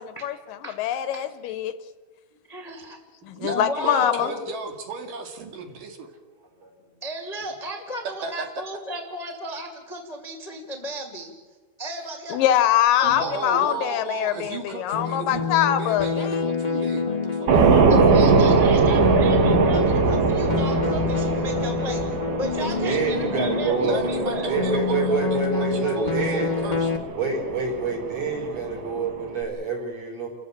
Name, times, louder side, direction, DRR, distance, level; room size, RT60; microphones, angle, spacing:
voice 1, 0.2-1.7 3.3-4.3 12.3-16.4, left 11 dB, 75° left, 12 dB, 2.3 m, -23 dB
voice 2, 2.5-3.0 3.5-4.4 7.0-11.3 11.8-12.4 13.0-13.4 14.3-14.5 17.9-22.0 22.3-24.5, equal, 15° left, 2 dB, 1.5 m, -34 dB
voice 3, 3.3-6.1 8.2-8.3 13.0-17.9 23.8-26.9, right 4 dB, 65° right, 4 dB, 3.7 m, -34 dB
sound 1, 14.9-27.0, left 5 dB, 40° left, 0.6 m, -27 dB
sound 2, 17.5-29.4, right 4 dB, 85° right, 3.9 m, -22 dB
voice 4, 17.6-18.1 22.6-26.5 27.1-30.3, right 4 dB, 45° right, -1 dB, 6.0 m, -27 dB
29.0 x 14.5 x 8.5 m, 1.4 s
omnidirectional pair, 4.1 m